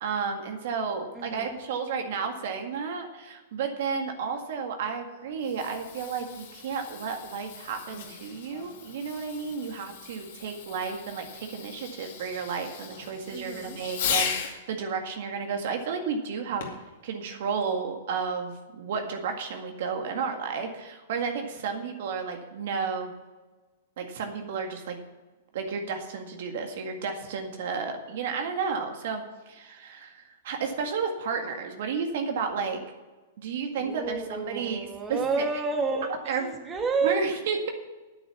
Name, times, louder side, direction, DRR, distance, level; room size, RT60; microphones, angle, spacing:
voice 1, 0.0-16.7 17.0-23.1 24.0-25.0 25.5-32.8 33.4-35.4 36.1-36.5 37.0-37.7, right 5 dB, 65° right, 4 dB, 1.9 m, -32 dB
voice 2, 1.1-1.6 13.3-13.8 33.8-37.2, right 4 dB, 20° right, 2 dB, 1.7 m, -30 dB
Fireworks, 5.2-14.6 16.6-16.9 17.6-17.7, left 7 dB, 65° left, 2.2 m, -37 dB
9.3 x 9.1 x 7.1 m, 1.2 s
hypercardioid pair, 125°, 0 cm